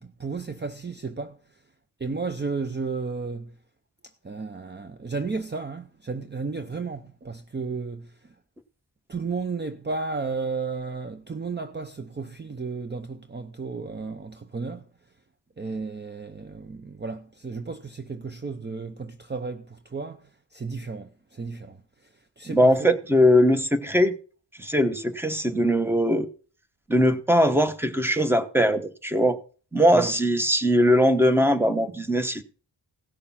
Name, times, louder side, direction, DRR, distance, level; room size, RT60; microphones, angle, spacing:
voice 1, 0.0-1.4 2.0-3.5 4.2-8.3 9.1-14.9 15.6-20.2 20.5-21.8 22.4-22.9 29.9-30.1, right 4 dB, 25° right, 0.7 m, -33 dB
voice 2, 22.5-24.1 24.6-26.3 26.9-29.4 29.7-32.4, equal, 5° right, 1.1 m, -20 dB
17.0 x 6.6 x 5.7 m
wide cardioid pair, 125°, 42 cm